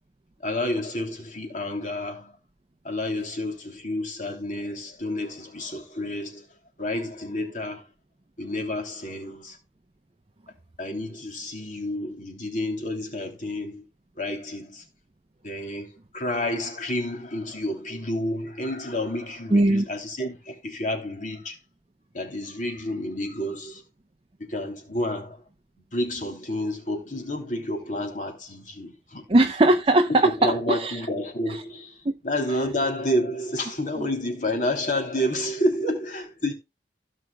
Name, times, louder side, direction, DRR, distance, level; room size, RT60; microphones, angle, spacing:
voice 1, 0.4-2.4 2.8-6.4 6.8-7.8 8.4-9.6 10.8-13.8 14.2-14.8 15.4-21.6 22.1-23.8 24.4-25.4 25.9-29.2 30.1-32.0 32.2-36.5, left 1 dB, 45° left, 3.1 m, -30 dB
voice 2, 19.5-19.9 29.3-31.0 31.4-31.6, right 2 dB, 30° right, 0.7 m, -20 dB
16.5 x 6.4 x 2.3 m
head